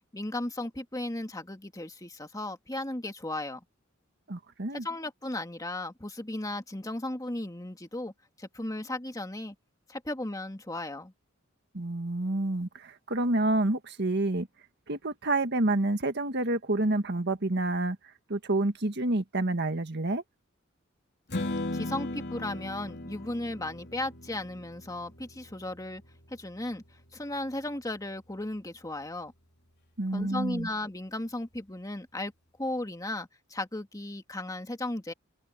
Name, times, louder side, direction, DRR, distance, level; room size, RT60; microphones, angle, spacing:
voice 1, 0.1-3.6 4.7-8.1 8.4-9.6 9.9-11.1 21.7-26.0 26.3-26.8 27.1-29.3 30.1-32.3 32.6-35.1, left 1 dB, 20° left, 2.2 m, -35 dB
voice 2, 4.3-4.8 11.7-14.5 14.9-18.0 18.3-20.2 30.0-30.7, right 2 dB, 55° right, 1.7 m, -28 dB
Strum, 21.3-27.6, left 2 dB, 55° left, 4.3 m, -38 dB
head